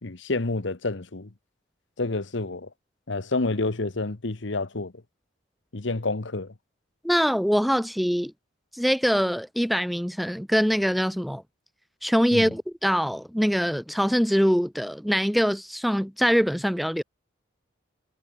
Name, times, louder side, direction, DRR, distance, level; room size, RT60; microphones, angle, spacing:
voice 1, 0.0-1.3 2.0-2.7 3.1-4.9 5.7-6.5 12.3-12.5, left 2 dB, 70° left, 1.1 m, -28 dB
voice 2, 7.0-8.3 8.7-11.4 12.0-17.0, equal, ahead, 0.6 m, -23 dB
head